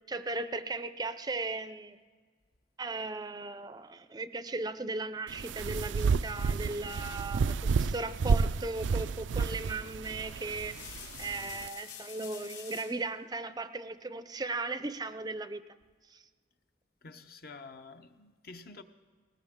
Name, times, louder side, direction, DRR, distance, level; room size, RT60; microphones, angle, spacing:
voice 1, 0.1-2.0 2.8-15.6 16.1-16.2, right 3 dB, 20° right, 0.5 m, -37 dB
sound 1, 5.3-11.7, right 5 dB, 90° right, 0.4 m, -31 dB
sound 2, 9.4-9.7 10.3-13.0 14.5-15.1, left 8 dB, 80° left, 3.2 m, -48 dB
voice 2, 17.0-18.8, left 3 dB, 55° left, 0.8 m, -49 dB
20.0 x 19.0 x 3.6 m
head